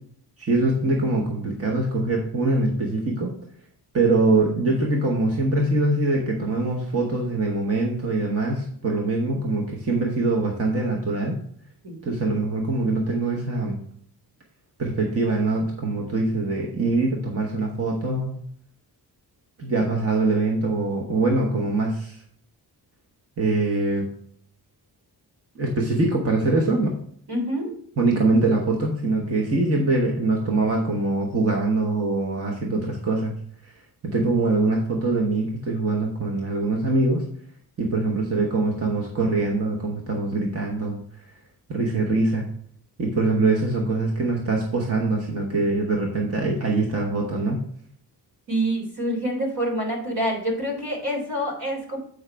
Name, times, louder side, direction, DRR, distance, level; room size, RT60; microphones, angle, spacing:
voice 1, 0.4-3.4 3.9-11.4 12.0-13.8 14.8-18.4 19.6-22.2 23.4-24.1 25.5-27.0 28.0-33.3 33.6-33.7 34.0-37.3 37.8-41.0 41.7-42.5 43.0-47.6, right 2 dB, 35° right, 0 dB, 1.0 m, -23 dB
voice 2, 27.3-27.7 48.5-52.0, right 1 dB, 65° right, -1 dB, 3.0 m, -26 dB
8.0 x 5.0 x 3.4 m, 0.62 s
wide cardioid pair, 155°, 41 cm